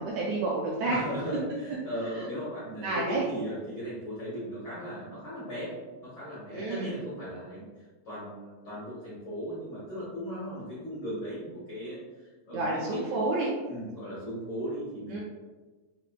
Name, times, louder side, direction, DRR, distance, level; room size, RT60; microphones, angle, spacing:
voice 1, 0.0-1.0 2.1-2.3 2.8-3.3 6.5-6.9 12.5-13.5 15.1-15.2, right 2 dB, 80° right, -4 dB, 1.5 m, -29 dB
voice 2, 0.9-13.0 13.6-15.2, equal, 80° left, -10 dB, 0.9 m, -37 dB
5.1 x 2.5 x 2.2 m, 1.3 s
omnidirectional pair, 3.6 m